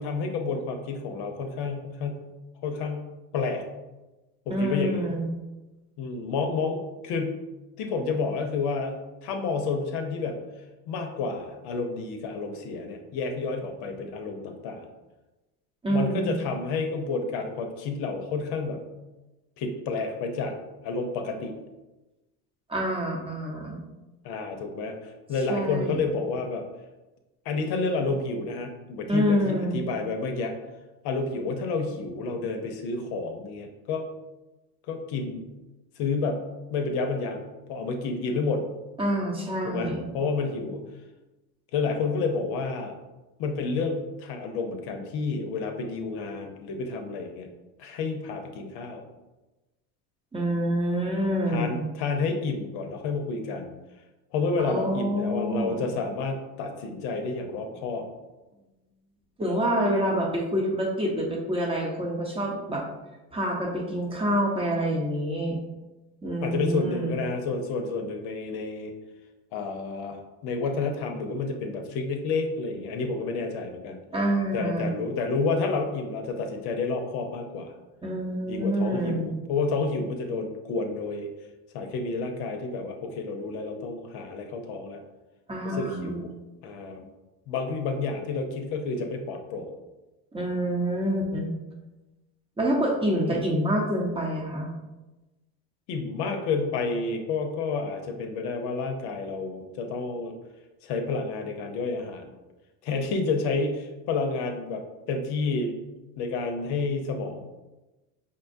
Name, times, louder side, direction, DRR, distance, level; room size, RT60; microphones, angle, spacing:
voice 1, 0.0-2.3 2.6-3.1 3.3-3.6 4.5-5.1 6.0-6.8 7.0-7.4 7.8-10.4 10.9-14.9 15.9-18.8 19.6-20.5 20.8-21.5 24.2-26.6 27.4-30.5 31.0-34.1 34.9-35.4 36.0-36.4 36.7-37.4 37.7-38.6 39.6-40.8 41.7-42.9 43.4-47.5 47.8-49.0 51.5-53.7 54.3-58.1 66.4-68.9 69.5-74.0 74.5-77.7 78.5-81.3 81.7-85.0 85.6-86.3 86.6-87.1 87.5-89.7 93.3-93.4 95.9-100.3 100.8-102.3 102.8-105.7 106.2-107.4, left 4 dB, 60° left, 5 dB, 0.7 m, -30 dB
voice 2, 4.5-5.3 15.8-16.4 22.7-23.8 25.5-26.1 29.1-29.8 39.0-40.1 50.3-51.7 54.6-55.8 59.4-62.8 63.3-65.6 66.2-67.2 74.1-74.9 78.0-79.3 85.5-86.2 90.3-91.5 92.6-94.7, equal, 10° right, -1 dB, 0.8 m, -27 dB
5.3 x 2.2 x 2.6 m, 1.1 s
supercardioid pair, 90°, 46 cm